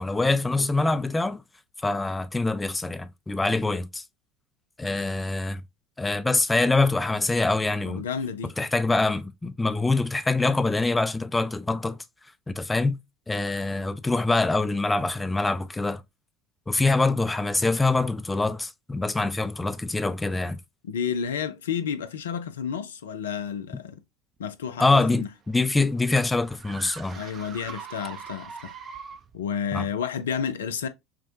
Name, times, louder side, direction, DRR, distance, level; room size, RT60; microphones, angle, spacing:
voice 1, 0.0-1.4 1.8-4.0 4.8-5.6 6.0-8.0 8.4-12.0 12.5-13.0 13.3-16.0 16.7-20.6 24.8-27.2 29.7-29.9, left 3 dB, 15° left, 0.4 m, -24 dB
voice 2, 7.9-8.5 20.8-24.0 24.4-25.3 27.1-28.7 29.3-30.9, left 7 dB, 75° left, 0.4 m, -31 dB
sound 1, 25.2-29.4, right 6 dB, 40° right, 0.6 m, -42 dB
5.9 x 2.2 x 2.6 m
figure-of-eight pair, 65°, 0 cm